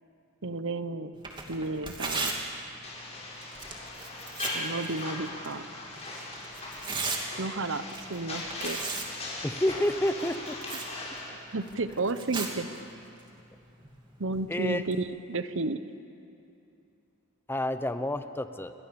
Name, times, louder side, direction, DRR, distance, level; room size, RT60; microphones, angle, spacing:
voice 1, 0.4-1.1 1.5-2.4 4.5-5.6 7.4-7.8 8.1-8.8 10.7-10.8 11.5-12.7 14.2-15.8, right 3 dB, 65° right, 12 dB, 1.0 m, -32 dB
Tearing, 1.1-15.0, right 3 dB, 25° right, 2.7 m, -39 dB
sound 1, 2.8-11.3, left 2 dB, 30° left, 6.7 m, -39 dB
voice 2, 9.4-10.6 11.0-11.1 14.5-14.8 17.5-18.7, left 1 dB, 10° left, 10 dB, 0.8 m, -29 dB
28.5 x 23.0 x 7.0 m, 2.7 s
head